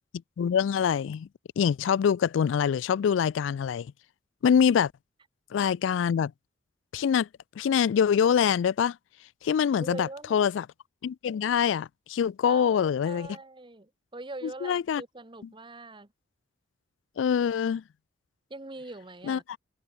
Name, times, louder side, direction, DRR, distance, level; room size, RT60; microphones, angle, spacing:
voice 1, 0.4-1.3 1.6-3.9 4.4-4.9 5.5-6.3 6.9-7.3 7.6-9.0 9.4-10.7 11.0-13.3 14.6-15.0 17.2-17.8 19.3-19.6, left 7 dB, 80° left, 0.3 m, -25 dB
voice 2, 9.8-10.5 12.4-16.1 18.5-19.4, right 2 dB, 25° right, 1.4 m, -42 dB
head